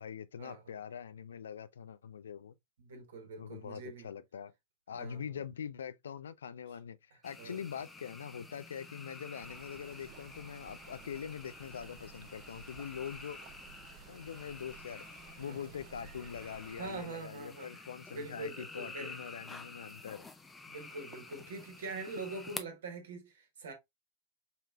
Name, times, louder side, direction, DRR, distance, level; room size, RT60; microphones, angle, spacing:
voice 1, 0.0-2.5 3.4-4.5 4.9-13.4 14.1-15.0 15.4-20.3, left 8 dB, 65° left, 0.3 m, -43 dB
voice 2, 2.8-4.1 4.9-5.4 7.4-7.6 15.4-15.7 16.8-17.9 18.1-19.1 20.7-23.7, right 3 dB, 60° right, 1.2 m, -44 dB
sound 1, 7.2-22.6, left 3 dB, 10° left, 0.5 m, -50 dB
Stream, 9.4-17.1, right 7 dB, 45° right, 0.5 m, -55 dB
4.8 x 3.2 x 2.3 m
figure-of-eight pair, 90°, 0 cm